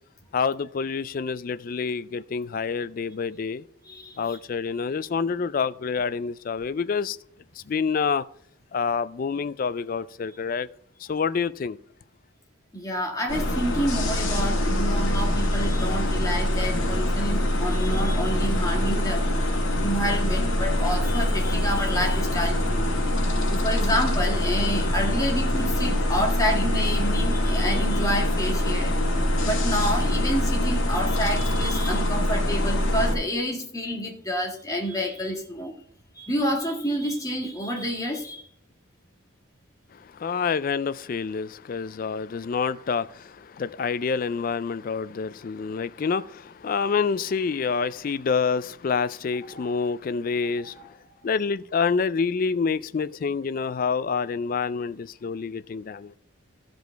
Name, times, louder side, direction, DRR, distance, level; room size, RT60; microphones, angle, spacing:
voice 1, 0.3-3.6 4.2-7.2 7.7-8.2 8.7-10.7 11.0-11.8 40.1-50.9 51.2-56.2, left 5 dB, 45° left, 0.3 m, -27 dB
voice 2, 3.8-4.4 12.7-19.2 19.8-22.9 23.5-29.0 29.4-35.7 36.1-38.4 49.5-49.8, equal, 15° left, 1.7 m, -29 dB
sound 1, 13.3-33.1, left 1 dB, 75° left, 2.1 m, -24 dB
15.0 x 5.2 x 4.6 m
head